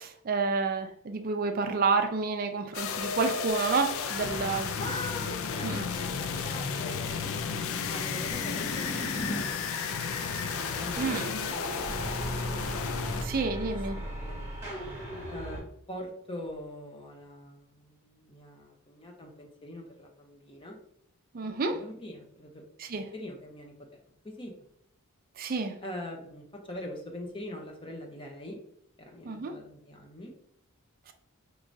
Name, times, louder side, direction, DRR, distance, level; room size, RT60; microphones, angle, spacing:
voice 1, 0.0-4.7 5.6-5.8 11.0-11.3 13.2-14.0 21.3-21.8 22.8-23.1 25.4-25.8 29.2-29.6, right 4 dB, 40° right, 6 dB, 0.4 m, -29 dB
sound 1, 2.7-13.2, left 6 dB, 65° left, 0.4 m, -33 dB
sound 2, 4.0-9.5, left 1 dB, 50° left, 1.6 m, -41 dB
voice 2, 4.7-11.2 11.5-12.1 13.3-13.5 14.0-14.4 15.3-15.6 15.9-20.8 21.4-22.6 22.9-23.7 24.2-24.5 25.8-28.6 29.0-30.3, left 1 dB, 25° left, 1 dB, 0.6 m, -43 dB
sound 3, 8.3-15.6, right 1 dB, 10° right, 1.2 m, -39 dB
4.7 x 3.0 x 2.6 m, 0.70 s
head